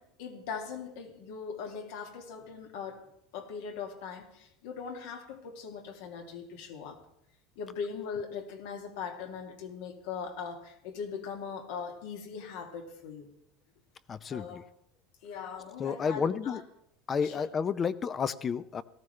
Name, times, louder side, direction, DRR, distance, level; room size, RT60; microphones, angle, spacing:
voice 1, 0.0-3.1 3.3-7.0 7.6-13.3 14.3-14.7 15.2-16.6 17.2-17.5, left 6 dB, 80° left, 4 dB, 2.3 m, -40 dB
voice 2, 14.1-14.6 15.8-16.6 17.1-18.8, left 6 dB, 25° left, 15 dB, 0.6 m, -31 dB
18.0 x 14.5 x 3.3 m, 0.78 s
supercardioid pair, 135°, 0 cm